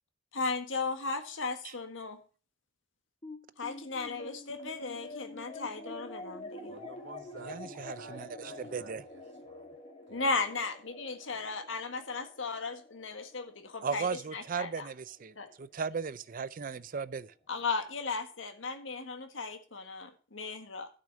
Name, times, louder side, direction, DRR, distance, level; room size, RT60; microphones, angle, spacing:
voice 1, 0.3-2.2 3.6-6.8 10.1-14.1 14.3-14.9 15.4-15.5 17.5-20.9, left 4 dB, 80° left, 1.6 m, -36 dB
sound 1, 3.2-15.8, left 2 dB, 30° left, 2.3 m, -48 dB
voice 2, 6.7-9.7 10.1-10.3, right 2 dB, 65° right, 3.8 m, -51 dB
voice 3, 7.4-9.0 13.8-17.3, right 5 dB, 45° right, 0.5 m, -37 dB
12.0 x 6.2 x 6.4 m
head